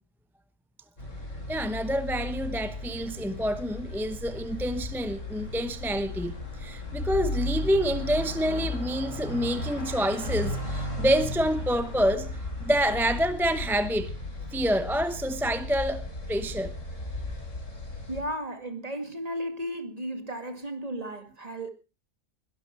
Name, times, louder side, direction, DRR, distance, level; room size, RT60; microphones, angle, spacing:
sound 1, 1.0-18.2, left 2 dB, 55° left, 4.6 m, -35 dB
voice 1, 1.5-12.3 12.6-14.1 14.5-16.0 16.3-16.7, equal, ahead, 0.6 m, -27 dB
voice 2, 18.1-21.7, equal, 25° right, 2.1 m, -34 dB
21.5 x 12.0 x 4.4 m
omnidirectional pair, 1.5 m